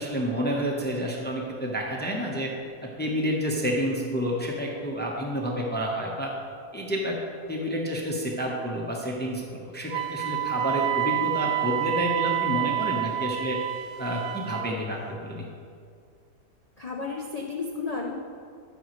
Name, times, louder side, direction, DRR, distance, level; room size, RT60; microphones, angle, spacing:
voice 1, 0.0-2.5 3.0-6.3 6.7-7.2 7.5-13.6 14.0-15.4, equal, 10° left, -1 dB, 0.6 m, -29 dB
Wind instrument woodwind instrument, 9.9-14.7, right 15 dB, 70° right, 0.9 m, -28 dB
voice 2, 16.8-18.1, left 4 dB, 60° left, -1 dB, 0.4 m, -32 dB
14.0 x 6.1 x 3.1 m, 2.3 s
omnidirectional pair, 1.8 m